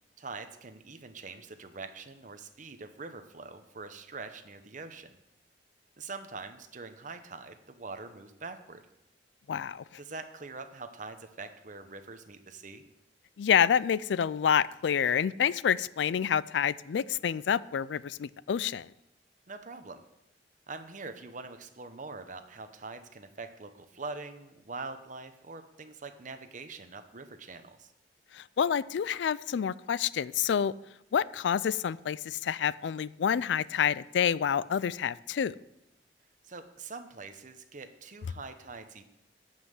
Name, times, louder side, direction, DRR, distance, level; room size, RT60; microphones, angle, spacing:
voice 1, 0.2-5.2 6.0-8.8 10.0-12.8 19.5-20.0 20.7-27.9 36.5-39.0, right 3 dB, 45° right, 8 dB, 0.9 m, -44 dB
voice 2, 9.5-9.8 13.4-18.9 28.3-30.7 31.1-35.6, left 8 dB, 75° left, 19 dB, 0.3 m, -28 dB
11.5 x 5.7 x 8.0 m, 0.87 s
head